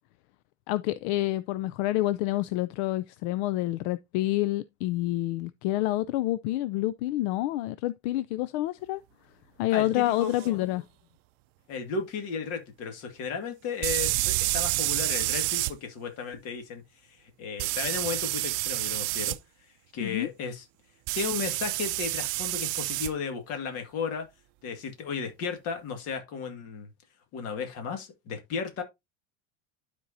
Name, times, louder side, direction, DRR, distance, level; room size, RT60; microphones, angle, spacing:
voice 1, 0.7-9.0 9.6-10.8 20.0-20.3, left 16 dB, 75° left, 0.5 m, -28 dB
voice 2, 9.7-10.6 11.7-16.8 17.1-19.4 19.9-20.7 21.1-24.3 24.6-26.9 27.3-28.8, left 5 dB, 50° left, 2.0 m, -34 dB
sound 1, 10.4-10.5 13.8-15.7 17.6-19.4 21.1-23.1, right 22 dB, 75° right, 0.5 m, -28 dB
12.0 x 4.5 x 2.7 m
cardioid pair, 170°, 33 cm